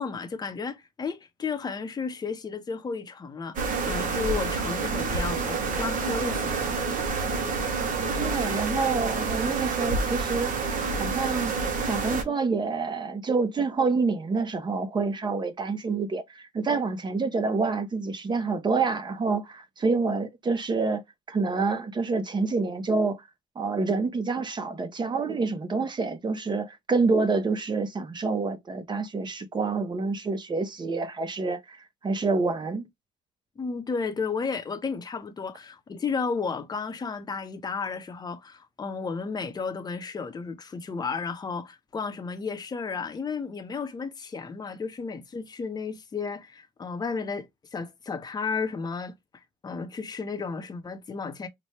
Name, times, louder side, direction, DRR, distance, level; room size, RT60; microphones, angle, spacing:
voice 1, 0.0-6.8 7.0-7.2 33.6-49.1 49.6-51.5, left 5 dB, 25° left, 0.7 m, -33 dB
sound 1, 3.6-12.2, right 4 dB, 50° right, 1.0 m, -28 dB
voice 2, 8.1-10.5 11.0-11.6 11.8-21.0 21.3-23.2 23.6-32.9, right 4 dB, 25° right, 0.8 m, -27 dB
4.1 x 2.2 x 3.2 m
cardioid pair, 110°, 17 cm